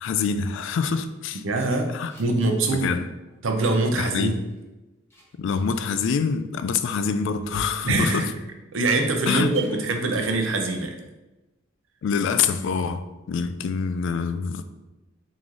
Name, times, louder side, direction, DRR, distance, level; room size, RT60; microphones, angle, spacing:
voice 1, 0.0-1.4 1.9-2.1 2.7-3.1 4.0-4.5 5.4-8.3 9.3-9.5 12.0-14.6, left 6 dB, 65° left, 0.3 m, -25 dB
voice 2, 1.4-1.9 2.2-2.9 3.4-4.4 7.8-8.3 8.7-11.0, right 2 dB, 75° right, 0.6 m, -23 dB
sound 1, 1.6-2.5 2.7-2.9 3.3-3.7 4.3-4.6 5.1-5.8 7.3-7.8 8.8-9.0 9.5-9.9, equal, 10° left, 1.1 m, -46 dB
3.8 x 3.1 x 3.7 m
head